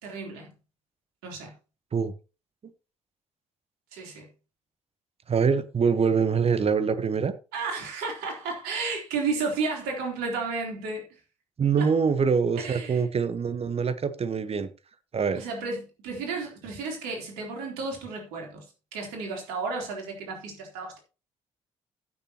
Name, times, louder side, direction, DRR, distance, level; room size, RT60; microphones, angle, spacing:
voice 1, 0.0-0.5 1.2-1.5 3.9-4.3 7.5-11.0 11.8-11.9 12.6-13.0 15.4-18.7 18.9-21.0, right 4 dB, 70° right, 3.6 m, -32 dB
voice 2, 5.3-7.3 11.6-14.7 15.1-15.4, right 6 dB, 40° right, 1.2 m, -24 dB
15.5 x 7.0 x 3.0 m
figure-of-eight pair, 45°, 16 cm